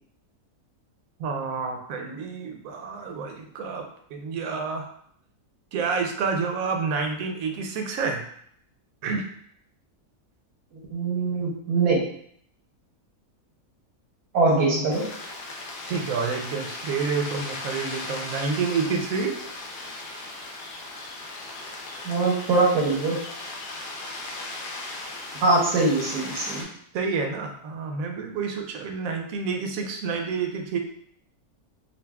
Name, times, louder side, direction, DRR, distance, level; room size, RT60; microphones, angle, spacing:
voice 1, 1.2-3.9 4.1-4.9 5.7-8.2 9.0-9.3 14.5-14.8 15.9-19.4 26.9-30.8, right 5 dB, 70° right, 3 dB, 1.0 m, -29 dB
voice 2, 10.9-12.0 14.3-15.0 22.0-23.2 25.3-26.7, right 3 dB, 90° right, -3 dB, 1.4 m, -22 dB
sound 1, 14.9-26.6, left 2 dB, 85° left, 1.3 m, -37 dB
5.2 x 2.3 x 2.2 m, 0.65 s
omnidirectional pair, 1.6 m